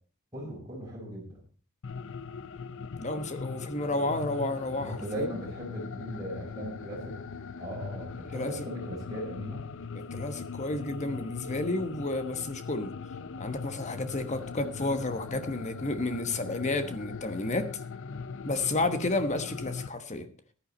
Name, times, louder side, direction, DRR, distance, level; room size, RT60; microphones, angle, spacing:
voice 1, 0.3-1.4 4.8-7.2 7.6-9.6, right 1 dB, 15° right, -4 dB, 4.7 m, -38 dB
sound 1, 1.8-19.9, left 5 dB, 60° left, 0.6 m, -40 dB
voice 2, 3.0-5.4 8.3-8.7 10.1-12.9 13.4-17.7 18.4-20.3, left 2 dB, 30° left, 9 dB, 1.2 m, -31 dB
14.5 x 10.5 x 4.3 m, 0.39 s
head